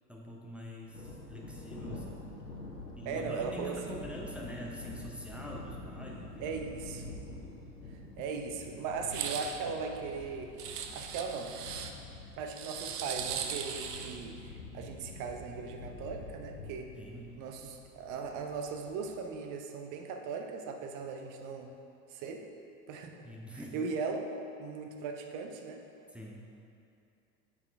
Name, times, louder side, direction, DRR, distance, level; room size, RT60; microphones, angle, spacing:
voice 1, 0.1-2.3 3.0-6.5 16.9-17.3 23.2-23.8 26.1-26.5, equal, ahead, -3 dB, 0.8 m, -45 dB
Thunder, 0.8-19.2, left 2 dB, 90° left, 1.1 m, -47 dB
voice 2, 3.0-4.1 6.4-7.2 7.9-10.5 10.9-11.5 12.4-16.9 17.4-21.7 22.1-22.4 22.9-23.3 23.7-24.3 24.6-25.8, right 5 dB, 40° right, 4 dB, 0.9 m, -38 dB
sound 1, 9.1-9.6 10.6-11.9 12.5-14.2, right 8 dB, 70° right, 0.7 m, -38 dB
8.8 x 6.2 x 3.4 m, 2.6 s
figure-of-eight pair, 80°, 48 cm